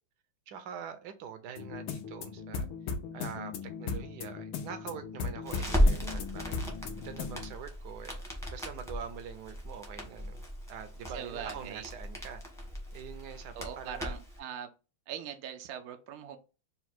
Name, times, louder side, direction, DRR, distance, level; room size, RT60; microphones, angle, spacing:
voice 1, 0.5-2.7 3.1-6.6 7.0-8.2 8.5-12.4 12.9-14.1, right 7 dB, 70° right, 1.0 m, -44 dB
sound 1, 1.6-7.5, left 5 dB, 85° left, 1.6 m, -38 dB
Crackle, 5.4-14.4, equal, 5° left, 0.6 m, -34 dB
voice 2, 11.0-11.8 13.5-14.7 15.1-16.4, right 8 dB, 90° right, 0.8 m, -41 dB
4.2 x 2.4 x 4.2 m
omnidirectional pair, 2.2 m